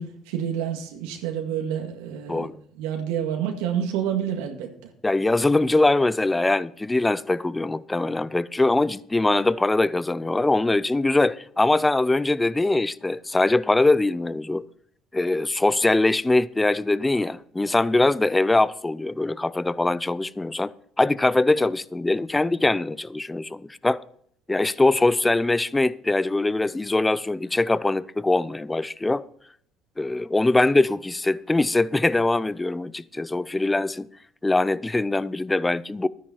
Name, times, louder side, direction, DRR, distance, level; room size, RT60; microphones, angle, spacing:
voice 1, 0.0-2.5 2.8-4.7, right 9 dB, 90° right, 1.9 m, -28 dB
voice 2, 5.0-14.6 15.1-20.7 21.0-24.0 24.5-29.2 30.0-34.1 34.4-36.1, left 2 dB, 15° left, 0.5 m, -22 dB
12.5 x 10.0 x 4.3 m
supercardioid pair, 90°, 0 cm